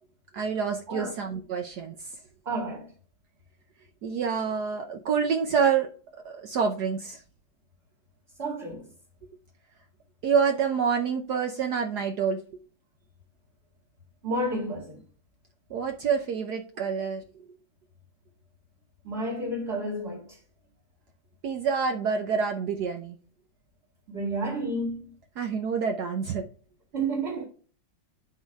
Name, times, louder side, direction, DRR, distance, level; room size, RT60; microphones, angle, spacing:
voice 1, 0.3-2.1 4.0-5.9 6.2-7.2 10.2-12.4 15.7-17.2 21.4-23.2 25.4-26.4, right 6 dB, 65° right, 1.3 m, -27 dB
voice 2, 2.4-2.9 8.4-8.9 14.2-15.0 19.0-20.4 24.1-25.1 26.9-27.4, right 1 dB, 35° right, 2.2 m, -31 dB
11.5 x 3.9 x 3.5 m
omnidirectional pair, 2.1 m